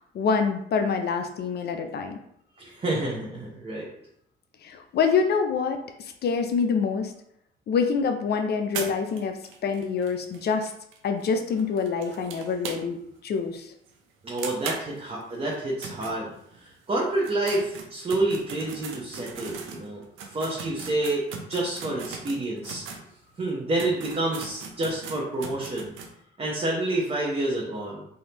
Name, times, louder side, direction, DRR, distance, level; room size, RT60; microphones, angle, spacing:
voice 1, 0.0-2.2 4.6-5.8 6.2-7.1 7.7-9.4 9.6-10.7 11.0-13.7, left 5 dB, 55° left, 6 dB, 0.4 m, -26 dB
voice 2, 2.6-3.9 14.2-16.3 16.6-20.0 20.3-22.8 23.4-25.9 26.4-28.1, right 2 dB, 30° right, -4 dB, 0.8 m, -28 dB
sound 1, 8.7-13.2 13.5-13.6 13.9-14.0 14.4-16.7 17.1-23.0 23.5-23.6 23.8-26.1, right 5 dB, 90° right, 0.5 m, -39 dB
3.5 x 2.6 x 2.8 m, 0.72 s
cardioid pair, 90°, 20 cm